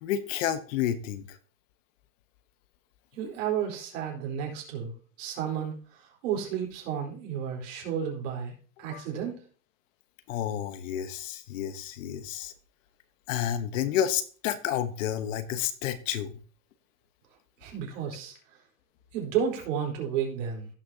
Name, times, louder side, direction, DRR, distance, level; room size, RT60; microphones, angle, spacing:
voice 1, 0.0-1.4 8.9-9.1 10.3-12.5 13.3-16.4, left 10 dB, 65° left, 1.1 m, -30 dB
voice 2, 3.1-4.9 5.2-8.5 8.8-9.4 17.6-18.3 19.1-20.7, right 8 dB, 65° right, 4.2 m, -32 dB
16.5 x 6.1 x 2.8 m
supercardioid pair, 140°, 41 cm